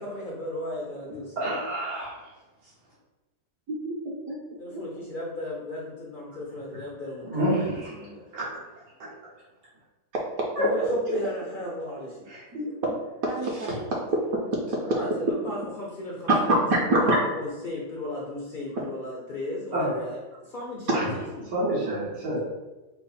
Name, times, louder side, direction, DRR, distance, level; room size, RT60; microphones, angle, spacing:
voice 1, 0.0-1.6 4.6-8.2 10.6-10.8 11.1-12.3 14.8-21.4, left 1 dB, 65° left, -4 dB, 0.5 m, -35 dB
voice 2, 1.4-2.3 7.2-8.1 8.3-8.5 10.6-10.7 12.3-12.7 19.7-19.9 20.9-21.1 21.5-22.4, right 1 dB, 85° right, -9 dB, 1.9 m, -28 dB
voice 3, 3.7-4.4 4.7-4.8 12.5-12.9 13.2-13.8 16.9-17.2, right 1 dB, 65° right, -2 dB, 1.0 m, -27 dB
5.6 x 2.0 x 4.1 m, 1.1 s
omnidirectional pair, 1.8 m